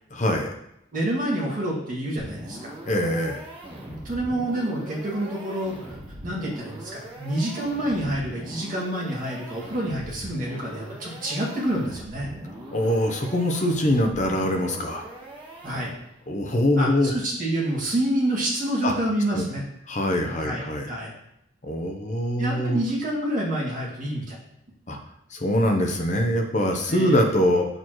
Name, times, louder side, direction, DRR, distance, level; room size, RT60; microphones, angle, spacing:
voice 1, 0.1-0.5 2.8-3.4 12.7-15.1 16.3-17.1 18.8-18.9 19.3-19.5 19.9-20.9 21.6-22.8 24.9-25.0 25.3-27.7, left 1 dB, 35° left, 3 dB, 0.7 m, -23 dB
voice 2, 0.9-2.7 3.8-5.8 6.2-12.3 15.6-15.9 16.8-19.6 20.3-21.1 22.4-24.4 26.9-27.2, right 1 dB, 40° right, -5 dB, 2.2 m, -28 dB
sound 1, 2.2-16.2, right 1 dB, 25° right, 1.3 m, -41 dB
7.5 x 6.7 x 3.1 m, 0.78 s
head